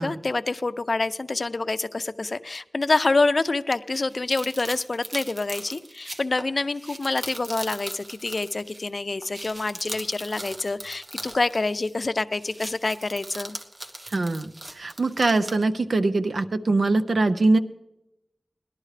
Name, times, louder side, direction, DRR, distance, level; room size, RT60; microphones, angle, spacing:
voice 1, 0.0-13.6, left 3 dB, 60° left, 12 dB, 0.5 m, -26 dB
sound 1, 3.9-8.9 9.2-12.1 12.3-15.6, right 1 dB, 50° right, 1.2 m, -39 dB
voice 2, 14.1-17.6, right 2 dB, 80° right, 9 dB, 0.7 m, -23 dB
19.0 x 11.5 x 3.3 m, 0.85 s
wide cardioid pair, 50°, 0 cm